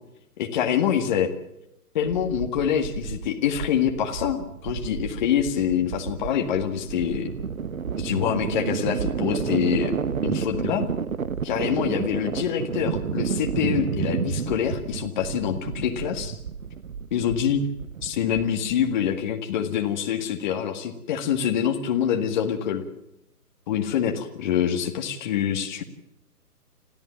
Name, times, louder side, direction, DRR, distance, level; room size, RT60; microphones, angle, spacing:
voice 1, 0.4-1.3 1.9-7.3 8.0-9.9 10.2-10.9 11.4-16.4 17.1-17.6 18.0-22.8 23.7-25.8, left 9 dB, 30° left, 4 dB, 1.8 m, -25 dB
sound 1, 2.0-19.0, right 6 dB, 60° right, 1.3 m, -31 dB
27.0 x 14.5 x 7.3 m, 0.84 s
figure-of-eight pair, 140°, 47 cm